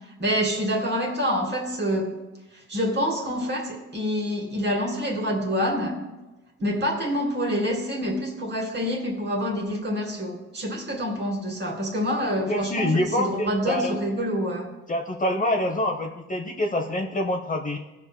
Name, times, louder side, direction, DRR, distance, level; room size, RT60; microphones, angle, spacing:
voice 1, 0.2-2.1 2.7-6.0 6.6-14.7, equal, 35° right, 2 dB, 2.1 m, -27 dB
voice 2, 12.5-14.0 14.9-17.8, left 1 dB, 25° left, 3 dB, 0.8 m, -26 dB
16.5 x 5.8 x 2.2 m, 1.1 s
cardioid pair, 90°, 30 cm